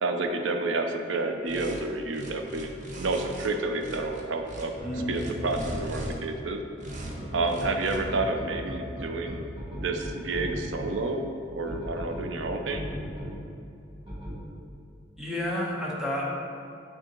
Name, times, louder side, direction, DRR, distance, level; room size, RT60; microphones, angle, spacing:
voice 1, 0.0-2.7 3.0-4.7 5.1-6.6 7.3-12.9, right 2 dB, 90° right, 5 dB, 0.5 m, -30 dB
sound 1, 1.5-1.8 2.1-3.5 3.8-4.6 5.1-6.1 6.8-7.1 7.4-8.0, right 1 dB, 40° right, 0.7 m, -40 dB
voice 2, 4.8-5.2 15.2-16.3, left 1 dB, 5° right, -6 dB, 1.0 m, -30 dB
sound 2, 4.8-6.1 6.9-10.9 11.7-13.3 14.1-14.3, equal, 25° right, 1.3 m, -36 dB
8.8 x 3.6 x 3.0 m, 2.7 s
head